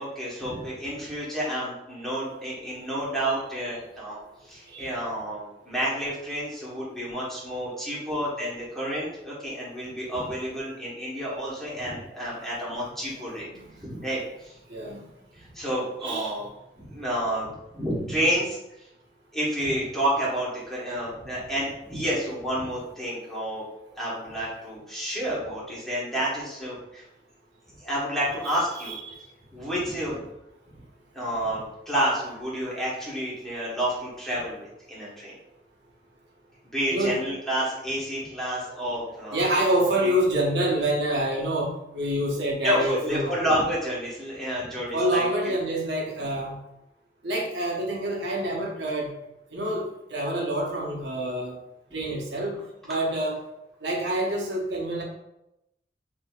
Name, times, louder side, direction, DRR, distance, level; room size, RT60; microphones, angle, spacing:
voice 1, 0.0-13.5 13.8-14.5 15.3-16.5 16.8-17.5 17.7-18.9 19.3-23.6 24.0-27.0 27.8-29.0 29.5-30.2 31.1-35.3 36.7-39.4 42.6-45.5, equal, ahead, -8 dB, 1.3 m, -30 dB
voice 2, 13.5-14.0 14.7-15.0 16.0-16.5 28.4-28.5 28.8-29.3 32.6-32.8 36.9-37.1 39.3-43.4 44.9-46.6 47.2-49.1 49.5-51.6 51.9-52.6 52.8-53.4 53.8-55.0, right 1 dB, 80° right, -2 dB, 1.0 m, -27 dB
6.1 x 2.8 x 2.4 m, 0.88 s
head